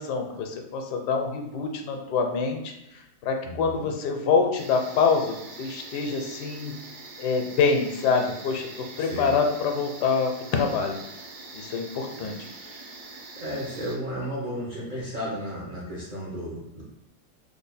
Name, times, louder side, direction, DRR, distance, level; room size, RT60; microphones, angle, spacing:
voice 1, 0.0-6.7 7.2-11.0 11.5-12.4, left 5 dB, 80° left, 4 dB, 1.2 m, -26 dB
voice 2, 3.4-3.8 9.0-9.3 13.4-16.8, equal, 55° right, -7 dB, 0.5 m, -33 dB
sound 1, 4.6-14.0, right 3 dB, 75° right, 1.3 m, -43 dB
3.3 x 2.2 x 4.0 m, 0.90 s
omnidirectional pair, 1.8 m